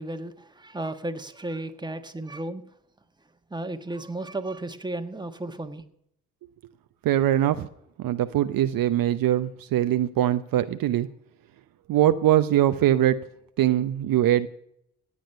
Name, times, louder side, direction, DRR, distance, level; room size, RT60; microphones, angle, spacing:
voice 1, 0.0-2.6 3.5-5.8, right 2 dB, 10° right, 1.4 m, -34 dB
voice 2, 7.0-7.7 8.0-11.1 11.9-13.2 13.6-14.5, right 12 dB, 60° right, 0.8 m, -22 dB
16.5 x 8.9 x 5.6 m
hypercardioid pair, 45°, 39 cm